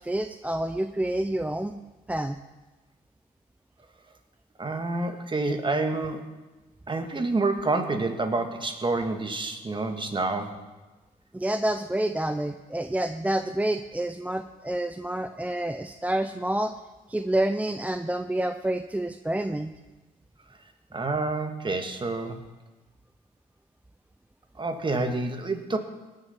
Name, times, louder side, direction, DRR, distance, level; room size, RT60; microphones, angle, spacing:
voice 1, 0.0-1.7 2.1-2.4 11.3-16.7 17.1-19.7, right 1 dB, 10° right, 8 dB, 0.5 m, -28 dB
voice 2, 4.6-6.3 6.9-10.6 20.9-22.4 24.6-25.8, right 3 dB, 30° right, 6 dB, 1.7 m, -28 dB
19.0 x 6.7 x 5.7 m, 1.2 s
cardioid pair, 70°, 16 cm